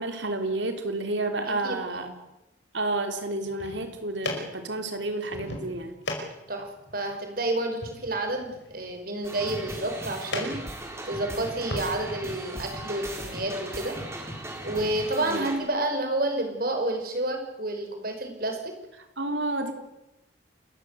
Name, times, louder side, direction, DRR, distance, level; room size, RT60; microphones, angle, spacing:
voice 1, 0.0-2.1 2.7-5.9 15.2-15.5 19.2-19.7, right 2 dB, 75° right, 6 dB, 3.6 m, -30 dB
voice 2, 1.5-2.1 6.5-10.6 11.0-13.9 14.6-18.7, right 1 dB, 50° right, 4 dB, 5.3 m, -30 dB
sound 1, 3.3-11.9, left 2 dB, 70° left, 5.3 m, -39 dB
sound 2, 9.2-15.6, right 1 dB, 15° right, 3.8 m, -38 dB
29.0 x 14.5 x 8.3 m, 0.92 s
head